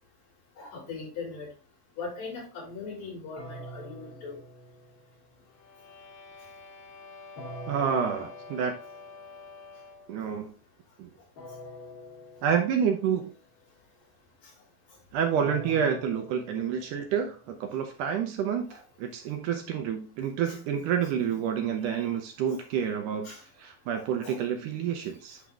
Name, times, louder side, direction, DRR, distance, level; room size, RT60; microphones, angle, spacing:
voice 1, 0.6-1.5 2.0-4.4 18.7-18.8 21.8-22.0 23.2-23.4 23.9-24.4, left 4 dB, 70° left, -5 dB, 5.6 m, -40 dB
sound 1, 3.4-5.4 7.4-9.2 11.4-13.2 15.4-17.6, equal, 50° left, 1.6 m, -45 dB
sound 2, 5.5-10.2, left 4 dB, 90° left, 3.0 m, -47 dB
voice 2, 7.7-8.8 10.1-10.5 11.0-11.1 12.4-13.3 15.1-23.3 23.6-25.4, right 8 dB, 75° right, 4 dB, 2.1 m, -29 dB
9.5 x 3.6 x 3.5 m, 0.36 s
omnidirectional pair, 4.1 m